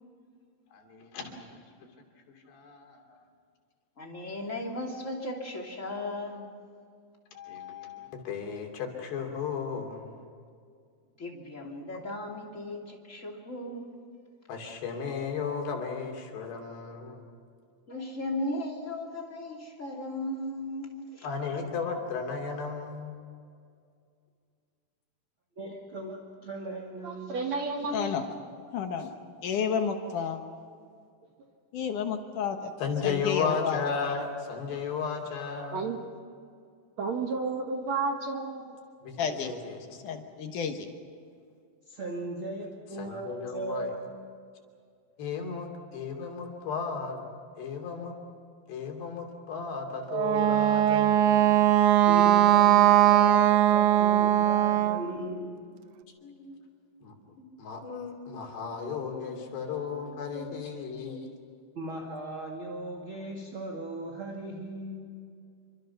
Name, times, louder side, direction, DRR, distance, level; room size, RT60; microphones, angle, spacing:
voice 1, 0.7-1.6 2.3-3.3 7.3-10.3 14.5-17.3 21.2-23.2 32.8-36.0 39.0-40.0 42.9-44.1 45.2-47.3 47.6-48.1 48.7-51.6 53.2-53.3 53.9-54.1 56.2-56.5 57.0-61.3, left 5 dB, 90° left, 2 dB, 5.0 m, -35 dB
voice 2, 4.0-6.4 11.2-13.9 17.9-21.3, left 1 dB, 20° left, 0 dB, 2.7 m, -36 dB
voice 3, 25.6-27.4 41.9-44.1 52.0-55.6 61.7-65.1, right 2 dB, 35° right, 0 dB, 2.7 m, -38 dB
voice 4, 27.0-28.1 35.7-36.0 37.0-38.8, right 4 dB, 50° right, 3 dB, 2.5 m, -32 dB
voice 5, 27.8-28.2 28.7-29.1 29.4-30.4 31.7-32.7 33.0-33.8 39.2-39.5 40.0-40.9, left 6 dB, 60° left, 5 dB, 2.5 m, -31 dB
Wind instrument woodwind instrument, 50.1-55.1, right 12 dB, 80° right, 1.8 m, -20 dB
27.5 x 25.0 x 5.9 m, 2.2 s
omnidirectional pair, 4.6 m